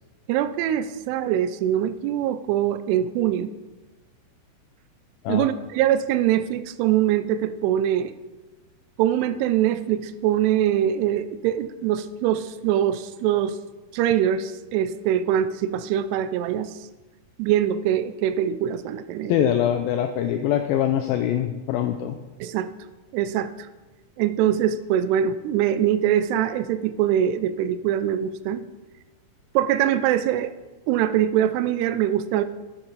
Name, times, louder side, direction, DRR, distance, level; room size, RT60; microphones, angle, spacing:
voice 1, 0.3-3.5 5.3-8.1 9.0-13.6 13.9-16.7 17.4-19.5 22.4-22.7 23.1-23.5 24.2-28.6 29.6-30.5 30.9-32.4, right 10 dB, 90° right, 13 dB, 2.6 m, -23 dB
voice 2, 19.3-22.2, left 10 dB, 85° left, 7 dB, 2.1 m, -23 dB
9.9 x 8.6 x 4.0 m, 1.2 s
omnidirectional pair, 4.7 m